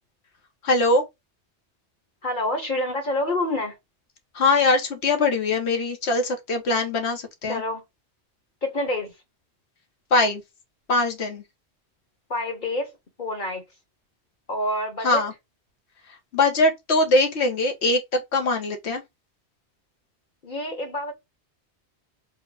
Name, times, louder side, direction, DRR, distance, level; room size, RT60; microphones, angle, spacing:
voice 1, 0.6-1.0 4.3-7.6 10.1-10.4 10.9-11.4 15.0-15.3 16.3-19.0, left 2 dB, 75° left, 1.3 m, -22 dB
voice 2, 2.2-3.8 7.5-7.8 8.6-9.1 12.3-12.9 13.2-13.6 14.5-15.2 20.4-21.1, left 1 dB, 50° left, 1.2 m, -27 dB
4.5 x 2.2 x 3.3 m
omnidirectional pair, 1.1 m